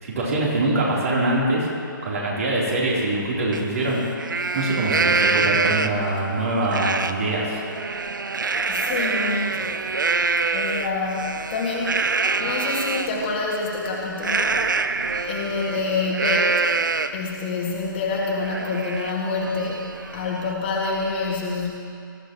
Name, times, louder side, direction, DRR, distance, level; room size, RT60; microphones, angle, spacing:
voice 1, 0.0-1.7 2.0-4.0 4.5-7.6, right 2 dB, 40° right, -5 dB, 3.6 m, -23 dB
Livestock farm animals working animals, 3.5-3.6 4.0-6.1 6.7-7.1 7.5-13.1 14.2-17.3 17.7-17.8 18.2-20.5, right 4 dB, 60° right, 0.6 m, -25 dB
voice 2, 8.7-9.8 10.2-12.0 12.4-14.6 15.3-16.7 17.1-21.7, left 3 dB, 30° left, -3 dB, 2.1 m, -27 dB
20.5 x 14.0 x 3.1 m, 2.4 s
figure-of-eight pair, 135°, 12 cm